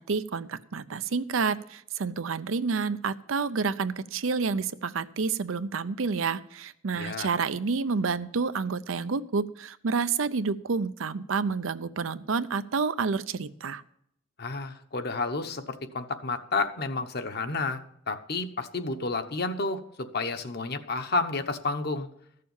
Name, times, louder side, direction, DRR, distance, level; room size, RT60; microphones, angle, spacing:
voice 1, 0.0-13.8, right 5 dB, 90° right, 13 dB, 0.6 m, -29 dB
voice 2, 7.0-7.3 14.4-22.1, left 3 dB, 55° left, 8 dB, 1.0 m, -31 dB
14.5 x 6.7 x 7.1 m, 0.74 s
head